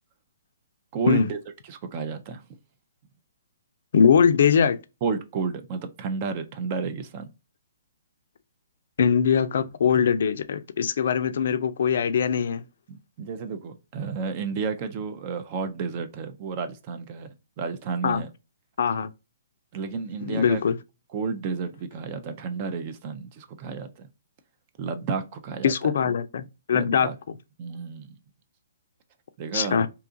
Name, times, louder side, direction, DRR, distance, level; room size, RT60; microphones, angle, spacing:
voice 1, 0.9-1.4 1.7-2.4 5.0-7.3 12.9-18.3 19.7-20.6 21.1-24.1 24.8-25.7 26.7-27.1 27.6-28.2 29.4-29.8, right 5 dB, 35° right, 0.4 m, -31 dB
voice 2, 3.9-4.8 9.0-12.7 18.0-18.2 18.8-19.1 20.2-20.8 25.6-27.1 29.5-29.9, left 7 dB, 65° left, 0.4 m, -22 dB
2.8 x 2.3 x 2.5 m
hypercardioid pair, 140°, 0 cm